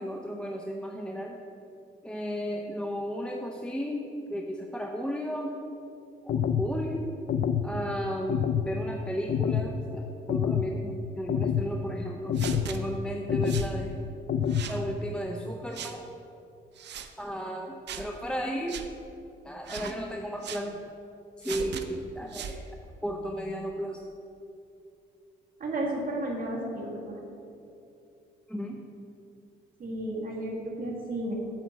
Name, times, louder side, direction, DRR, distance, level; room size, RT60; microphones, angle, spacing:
voice 1, 0.0-1.4 2.0-5.6 6.2-7.1 7.6-12.3 12.7-14.0 14.7-16.0 17.2-18.8 19.4-20.8 21.4-22.6 23.0-24.0 28.5-28.8, equal, 5° left, 1 dB, 0.6 m, -34 dB
sound 1, 6.3-6.7 7.3-7.7 8.3-8.7 9.3-9.7 10.3-10.7 11.3-11.7 12.3-12.7 13.3-13.7 14.3-14.7, left 8 dB, 50° left, 0.5 m, -27 dB
sound 2, 12.3-12.8 13.5-13.7 14.5-14.8 15.7-16.0 16.8-17.1 17.9-18.1 18.7-18.9 19.6-20.0 20.4-20.7 21.4-21.8 22.3-22.6, right 7 dB, 60° right, 0.7 m, -38 dB
voice 2, 25.6-27.2 29.8-31.3, right 1 dB, 45° right, -3 dB, 2.0 m, -33 dB
8.5 x 4.4 x 7.2 m, 2.7 s
cardioid pair, 90°, 20 cm